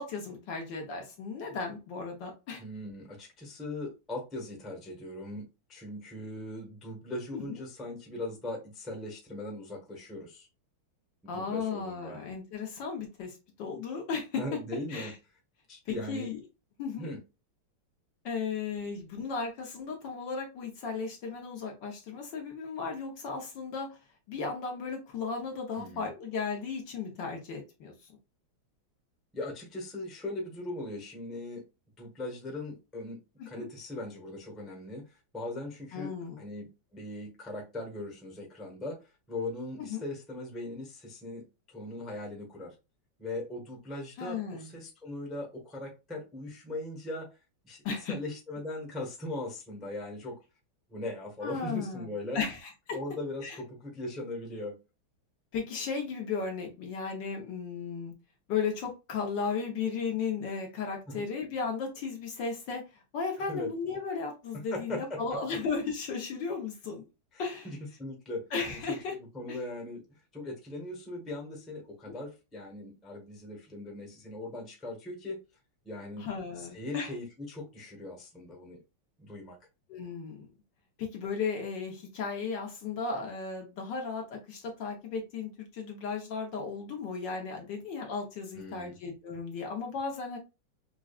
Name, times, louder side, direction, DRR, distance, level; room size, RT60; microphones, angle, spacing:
voice 1, 0.0-2.6 7.3-7.6 11.3-14.4 14.9-15.1 15.9-16.4 16.8-17.1 18.2-23.9 24.3-27.9 33.4-33.7 35.9-36.4 39.8-40.0 44.2-44.8 47.8-48.1 51.4-52.1 52.3-53.0 53.4-53.6 55.5-58.1 58.5-62.8 63.1-67.0 67.4-67.7 68.5-69.1 69.5-69.6 72.0-72.1 76.2-77.1 79.9-80.5 81.0-90.4, left 5 dB, 65° left, 2 dB, 1.5 m, -35 dB
voice 2, 2.6-10.5 11.2-12.2 14.4-15.1 15.7-16.3 17.0-17.2 25.7-26.1 29.3-31.6 32.0-33.2 33.4-39.0 39.3-42.7 43.2-47.3 47.6-47.8 48.1-50.4 50.9-52.4 52.9-54.8 61.1-61.2 63.5-63.7 64.7-65.4 67.3-70.0 70.3-75.4 75.8-76.3 76.6-78.8 79.2-79.6 88.5-89.0, left 1 dB, ahead, 0 dB, 0.8 m, -39 dB
6.0 x 2.3 x 2.4 m, 0.28 s
omnidirectional pair, 2.3 m